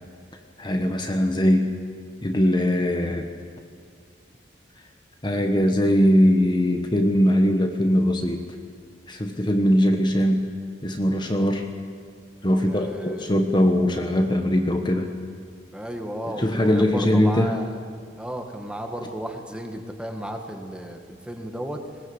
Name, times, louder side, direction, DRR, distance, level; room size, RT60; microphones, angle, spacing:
voice 1, 0.6-1.7 2.2-3.3 5.2-8.5 9.1-10.5 10.8-11.7 12.4-15.1 16.3-17.5, equal, 25° left, 4 dB, 1.3 m, -21 dB
voice 2, 12.5-13.3 15.7-17.8 18.2-21.8, right 1 dB, 5° right, 3 dB, 1.8 m, -34 dB
20.5 x 19.0 x 8.1 m, 2.2 s
head